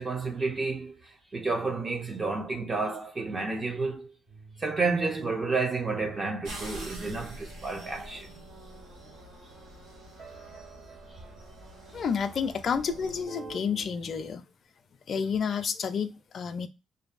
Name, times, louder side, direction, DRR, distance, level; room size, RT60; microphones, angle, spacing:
voice 1, 0.0-4.1 4.6-8.3 11.1-11.2, right 3 dB, 35° right, 0.5 m, -31 dB
sound 1, 4.3-14.3, right 3 dB, 65° right, 1.5 m, -50 dB
sound 2, 6.4-13.2, right 1 dB, 90° right, 1.2 m, -45 dB
voice 2, 11.9-14.5 15.1-16.7, left 6 dB, 55° left, 0.4 m, -30 dB
2.6 x 2.6 x 2.3 m
cardioid pair, 90°, 0 cm